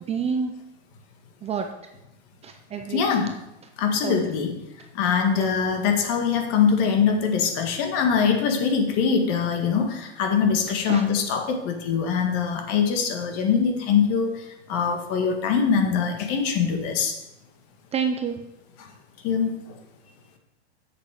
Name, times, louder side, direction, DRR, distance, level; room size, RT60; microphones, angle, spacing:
voice 1, 0.1-0.5 1.4-1.7 2.4-3.0 4.0-4.2 5.3-5.5 10.9-11.0 17.9-18.4, right 6 dB, 20° right, 5 dB, 0.5 m, -28 dB
voice 2, 2.9-3.4 3.8-4.6 4.9-17.2 19.2-19.8, left 6 dB, 45° left, 4 dB, 1.9 m, -23 dB
7.9 x 6.8 x 6.0 m, 0.88 s
hypercardioid pair, 130°, 34 cm